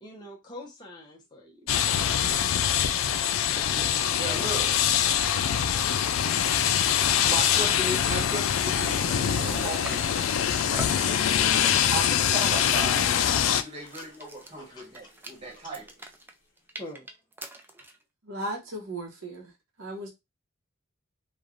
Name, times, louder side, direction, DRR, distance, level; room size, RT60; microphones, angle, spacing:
voice 1, 0.0-1.7 3.5-3.6 5.7-6.1 14.6-14.8 15.5-15.6 16.8-17.1, left 1 dB, 20° left, 0.7 m, -45 dB
sound 1, 1.7-13.6, left 9 dB, 75° left, 0.3 m, -24 dB
voice 2, 4.1-4.8 7.2-10.3 11.9-13.1 13.5-15.9, right 1 dB, 30° right, 1.2 m, -36 dB
sound 2, 7.2-7.3 7.6-7.8 8.2-10.2 10.7-11.1 11.6-12.1 12.6-18.0, right 2 dB, 10° right, 0.3 m, -44 dB
Water / Toilet flush, 8.3-14.6, left 3 dB, 60° left, 0.7 m, -40 dB
voice 3, 18.2-19.5 19.8-20.1, right 1 dB, 80° right, 0.9 m, -36 dB
3.2 x 2.3 x 2.4 m
head